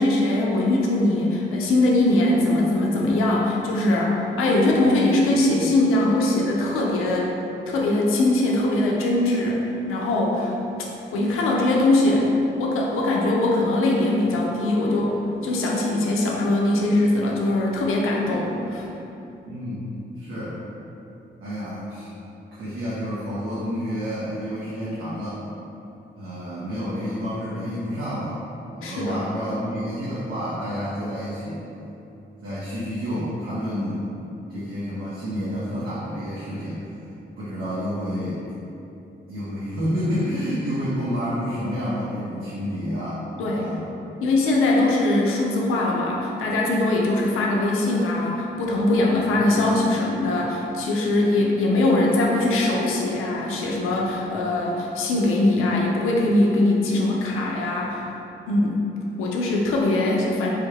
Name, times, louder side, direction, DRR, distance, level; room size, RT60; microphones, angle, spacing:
voice 1, 0.0-7.3 7.7-9.6 9.9-10.6 11.1-18.9 28.8-29.2 43.4-43.7 44.2-58.0 58.5-58.8 59.2-60.5, left 2 dB, 90° left, -2 dB, 0.4 m, -21 dB
voice 2, 19.4-20.6 21.4-22.1 22.5-25.4 26.2-28.4 28.7-31.6 32.4-34.0 34.5-36.8 37.4-38.4 39.3-43.9 49.3-49.6, equal, 75° right, -10 dB, 0.7 m, -29 dB
3.4 x 2.3 x 3.2 m, 2.9 s
supercardioid pair, 45°, 21 cm